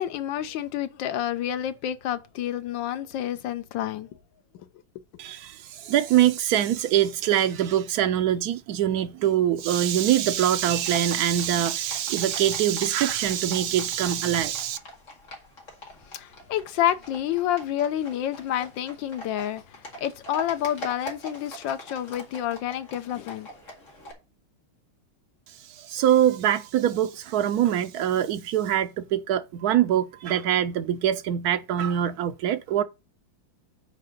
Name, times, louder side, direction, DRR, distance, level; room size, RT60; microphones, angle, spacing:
voice 1, 0.0-4.1 16.1-23.5, left 11 dB, 70° left, 1.4 m, -29 dB
voice 2, 5.2-14.8 25.7-32.8, right 11 dB, 80° right, 0.8 m, -24 dB
Livestock farm animals working animals, 10.8-24.1, left 1 dB, 40° left, 2.3 m, -43 dB
6.8 x 4.6 x 6.5 m
omnidirectional pair, 2.2 m